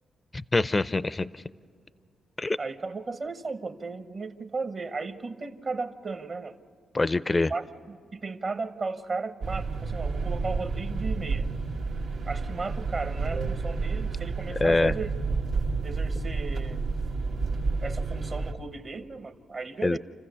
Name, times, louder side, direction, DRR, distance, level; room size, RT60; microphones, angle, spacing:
voice 1, 0.5-1.3 2.4-2.6 6.9-7.5 14.6-14.9 19.8-20.0, left 2 dB, 25° left, 16 dB, 0.4 m, -24 dB
voice 2, 2.6-6.6 7.3-11.5 12.3-15.1 15.8-16.8 17.8-20.0, right 4 dB, 50° right, 8 dB, 1.0 m, -35 dB
sound 1, 9.4-18.5, right 4 dB, 85° right, 1.5 m, -30 dB
29.0 x 15.0 x 6.9 m, 2.3 s
cardioid pair, 85°, 0 cm